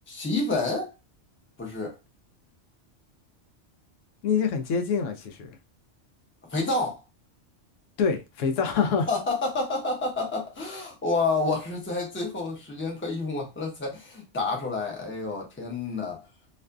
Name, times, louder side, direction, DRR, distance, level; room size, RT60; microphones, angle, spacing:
voice 1, 0.1-0.9 1.6-1.9 6.5-7.0 9.1-16.2, left 3 dB, 15° left, 0.6 m, -29 dB
voice 2, 4.2-5.5 8.0-9.1, left 6 dB, 85° left, 1.0 m, -25 dB
2.6 x 2.5 x 2.3 m
omnidirectional pair, 1.3 m